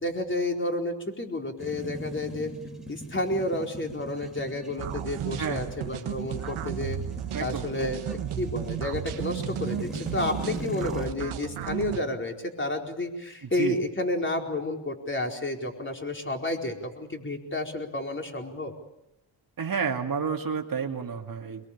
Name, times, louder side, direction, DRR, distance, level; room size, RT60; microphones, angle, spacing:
voice 1, 0.0-2.5 2.9-7.0 7.4-18.7, left 1 dB, 25° left, 3 dB, 4.5 m, -31 dB
sound 1, 1.6-11.1, equal, ahead, 4.3 m, -40 dB
sound 2, 4.8-12.0, right 10 dB, 85° right, 1.7 m, -34 dB
voice 2, 7.3-7.6 13.6-13.8 19.6-21.7, right 6 dB, 45° right, 2 dB, 2.5 m, -30 dB
23.0 x 22.5 x 8.6 m, 0.88 s
cardioid pair, 80°, 48 cm